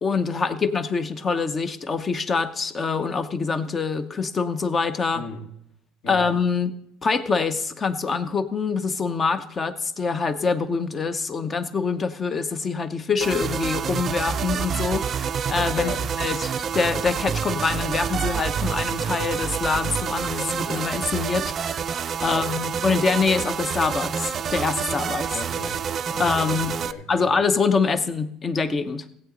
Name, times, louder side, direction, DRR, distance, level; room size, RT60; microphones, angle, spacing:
voice 1, 0.0-5.2 6.1-6.7 7.0-21.5 22.2-25.4 26.2-26.7 27.1-29.1, left 4 dB, 25° left, 12 dB, 0.8 m, -25 dB
voice 2, 5.1-5.5 6.0-6.3 15.7-16.1 22.2-22.5 25.3-27.3, left 3 dB, 55° left, 6 dB, 1.7 m, -36 dB
sound 1, 13.2-26.9, right 7 dB, 35° right, 0.5 m, -28 dB
15.5 x 8.5 x 3.9 m, 0.74 s
supercardioid pair, 115°, 0 cm